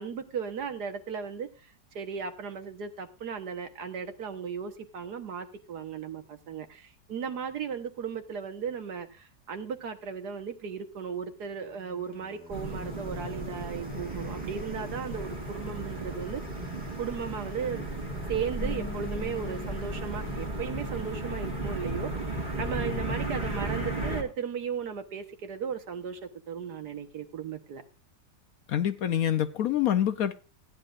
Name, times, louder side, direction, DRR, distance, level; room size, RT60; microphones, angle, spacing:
voice 1, 0.0-1.5 2.0-16.4 17.0-17.8 18.3-27.8, right 6 dB, 65° right, 1.7 m, -36 dB
sound 1, 11.4-20.5, right 3 dB, 10° right, 0.5 m, -48 dB
sound 2, 12.5-24.2, right 1 dB, 25° right, 2.0 m, -34 dB
sound 3, 18.6-24.2, left 6 dB, 85° left, 1.5 m, -46 dB
voice 2, 28.7-30.3, left 10 dB, 65° left, 1.0 m, -26 dB
16.0 x 10.5 x 2.5 m
omnidirectional pair, 1.9 m